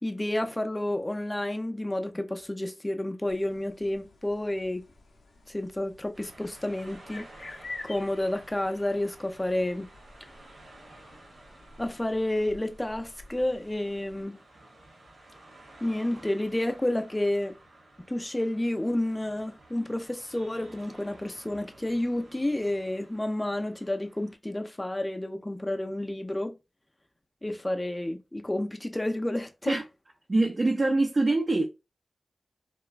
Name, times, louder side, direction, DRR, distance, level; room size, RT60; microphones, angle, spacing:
voice 1, 0.0-4.9 5.5-9.9 11.8-14.4 15.8-17.6 18.1-26.6 27.4-29.8, left 1 dB, 20° left, 0.4 m, -30 dB
sound 1, 3.3-14.2, left 2 dB, 85° left, 0.6 m, -49 dB
sound 2, 6.1-24.3, right 2 dB, 80° right, 1.0 m, -54 dB
voice 2, 30.3-31.6, right 2 dB, 45° right, 0.5 m, -24 dB
2.9 x 2.2 x 2.4 m
cardioid pair, 55°, 0 cm